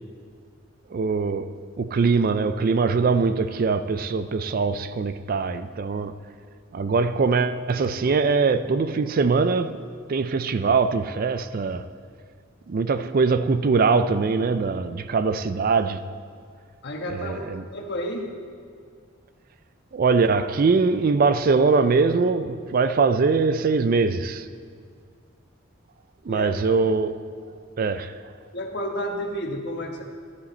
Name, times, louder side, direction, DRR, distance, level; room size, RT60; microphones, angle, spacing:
voice 1, 0.9-1.5 1.8-6.1 6.7-9.8 10.1-11.8 12.7-16.0 17.1-17.6 19.9-24.4 26.3-27.2 27.8-28.1, right 4 dB, 45° right, 0.4 m, -22 dB
voice 2, 16.8-17.5 17.7-18.3 26.3-26.5 28.5-30.0, equal, 55° left, 1.3 m, -31 dB
12.5 x 10.5 x 4.3 m
head